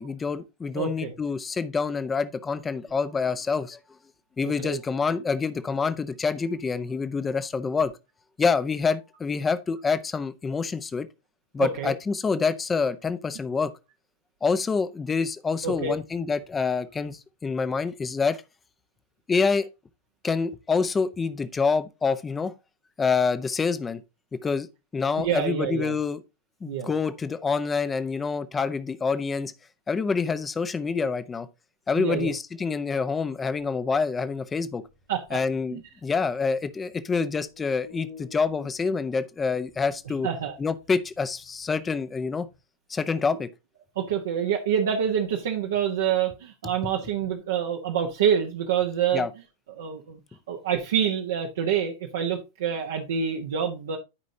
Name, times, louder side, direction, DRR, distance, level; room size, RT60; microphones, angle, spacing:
voice 1, 0.0-3.8 4.4-7.9 8.4-11.1 11.5-13.7 14.4-18.4 19.3-19.7 20.2-22.5 23.0-24.0 24.4-24.7 24.9-26.2 26.6-29.5 29.9-31.5 31.9-34.8 35.3-40.3 40.6-42.5 42.9-43.5 49.1-49.3, left 5 dB, 15° left, 0.8 m, -27 dB
voice 2, 0.7-1.1 4.4-4.8 11.6-11.9 15.6-15.9 25.2-25.9 26.7-26.9 32.0-32.3 35.1-35.4 35.7-35.8 40.2-40.6 43.9-49.3 49.8-50.2 50.5-54.0, right 8 dB, 60° right, 1.2 m, -27 dB
sound 1, 34.4-37.0 37.3-42.6, left 6 dB, 60° left, 2.7 m, -51 dB
13.0 x 5.2 x 2.8 m
figure-of-eight pair, 90°, 0 cm